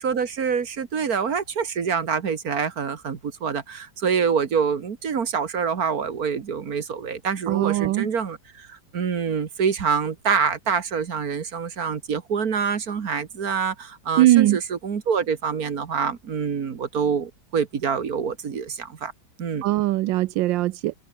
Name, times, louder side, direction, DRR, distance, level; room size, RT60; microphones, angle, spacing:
voice 1, 0.0-19.1 19.4-19.6, right 6 dB, 55° right, 1.9 m, -26 dB
voice 2, 7.5-8.1 14.2-14.6 19.6-20.9, right 16 dB, 85° right, 1.3 m, -20 dB
omnidirectional pair, 2.0 m